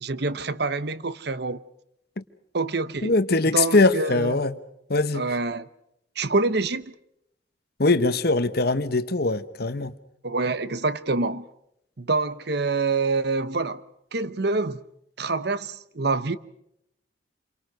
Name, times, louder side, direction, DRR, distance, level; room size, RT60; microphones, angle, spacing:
voice 1, 0.0-1.6 2.5-3.2 3.5-4.4 5.1-5.7 6.2-6.9 10.2-11.5 12.0-13.8 14.1-14.8 15.2-16.4, right 3 dB, 55° right, 0.9 m, -26 dB
voice 2, 3.0-4.6 4.9-5.2 7.8-9.9, left 3 dB, 50° left, 1.1 m, -22 dB
28.0 x 23.5 x 6.5 m
head